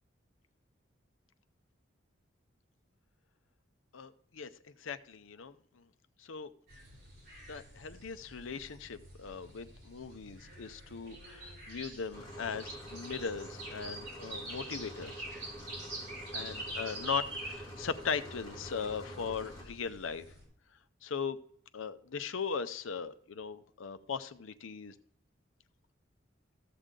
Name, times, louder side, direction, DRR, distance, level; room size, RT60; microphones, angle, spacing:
voice 1, 3.9-4.5 4.8-5.5 6.2-6.5 7.5-15.3 16.3-20.2 21.0-21.4 21.7-24.9, left 6 dB, 85° left, 11 dB, 0.6 m, -39 dB
sound 1, 6.7-20.4, right 1 dB, 55° right, 4.6 m, -46 dB
sound 2, 12.1-19.6, equal, 20° left, 2.0 m, -47 dB
14.0 x 6.7 x 3.8 m, 0.63 s
head